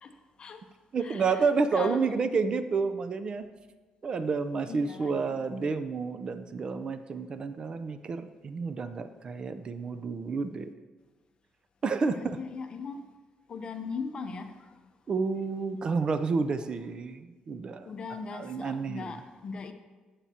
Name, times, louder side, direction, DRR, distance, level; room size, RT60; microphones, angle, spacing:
voice 1, 0.0-0.6 1.0-1.4 1.7-2.2 4.6-5.4 12.0-13.0 13.5-14.7 17.9-19.7, left 5 dB, 40° left, 0.8 m, -39 dB
voice 2, 0.9-3.5 4.0-10.7 11.8-12.4 15.1-17.9 18.3-19.2, right 4 dB, 40° right, 0.5 m, -30 dB
13.0 x 8.2 x 2.8 m
cardioid pair, 125°, 2 cm